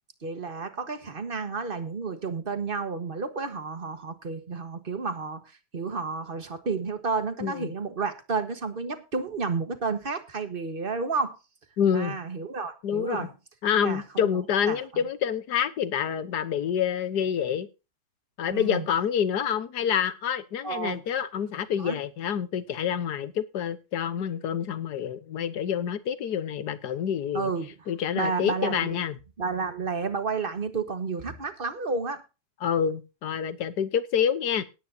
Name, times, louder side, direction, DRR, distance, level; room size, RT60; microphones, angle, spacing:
voice 1, 0.2-11.4 11.9-13.3 13.8-14.4 14.7-14.8 18.5-18.9 20.6-21.0 21.8-22.0 27.3-29.0 29.4-32.2, right 4 dB, 30° right, 1.5 m, -31 dB
voice 2, 11.8-12.2 12.8-13.3 13.6-17.7 18.4-27.5 27.9-29.1 32.6-34.6, left 8 dB, 70° left, 1.6 m, -27 dB
18.0 x 9.5 x 2.8 m
omnidirectional pair, 1.9 m